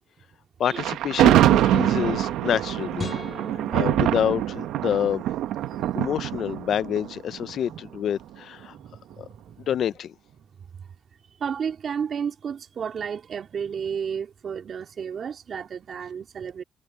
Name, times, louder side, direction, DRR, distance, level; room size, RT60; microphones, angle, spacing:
voice 1, 0.6-3.1 3.7-5.2 5.9-8.7 9.2-9.3 9.7-10.1, left 9 dB, 65° left, 0.6 m, -27 dB
Thunder, 0.7-7.9, right 12 dB, 90° right, 1.0 m, -23 dB
sound 1, 3.0-5.3, left 5 dB, 40° left, 2.6 m, -40 dB
voice 2, 8.7-9.6 11.4-16.6, right 7 dB, 55° right, 2.7 m, -32 dB
cardioid pair, 90°, 0 cm